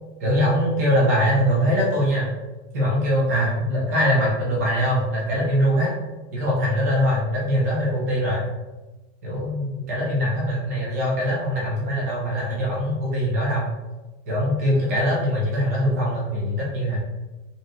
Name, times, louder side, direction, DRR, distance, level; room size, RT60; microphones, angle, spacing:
voice 1, 0.2-2.3 2.7-5.9 6.3-8.5 9.2-13.6 14.3-17.0, equal, 15° right, -4 dB, 0.3 m, -22 dB
5.1 x 2.3 x 2.7 m, 1.1 s
supercardioid pair, 170°, 38 cm